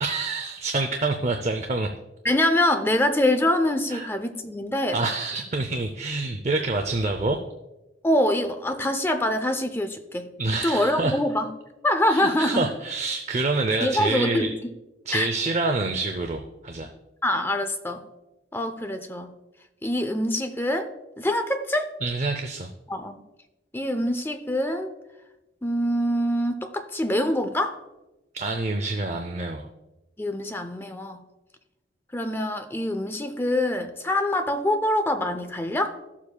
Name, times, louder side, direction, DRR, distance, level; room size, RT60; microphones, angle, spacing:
voice 1, 0.0-1.9 3.9-4.1 4.9-7.4 10.4-11.2 12.1-14.5 15.1-16.9 22.0-22.7 28.3-29.7, right 3 dB, 40° right, 5 dB, 0.5 m, -27 dB
voice 2, 2.2-5.0 8.0-10.3 10.6-11.5 11.8-12.7 13.8-14.7 15.1-15.3 17.2-18.1 18.5-19.3 19.8-21.9 22.9-23.2 23.7-24.9 25.6-27.8 30.2-31.3 32.1-36.0, left 1 dB, 10° left, 7 dB, 0.5 m, -25 dB
13.5 x 7.2 x 2.2 m, 1.0 s
head